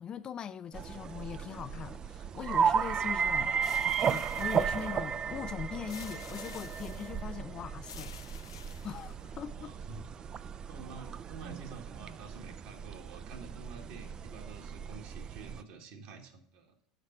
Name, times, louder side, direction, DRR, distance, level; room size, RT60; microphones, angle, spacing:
voice 1, 0.0-8.2 8.8-9.7, left 8 dB, 35° left, 0.4 m, -41 dB
sound 1, 0.7-15.6, right 7 dB, 35° right, 0.4 m, -34 dB
sound 2, 3.6-5.1 5.9-7.2 7.8-9.3, left 8 dB, 85° left, 0.5 m, -50 dB
voice 2, 9.5-10.4 10.7-16.7, right 4 dB, 60° right, 1.6 m, -49 dB
6.6 x 5.6 x 5.9 m
hypercardioid pair, 85°, 2 cm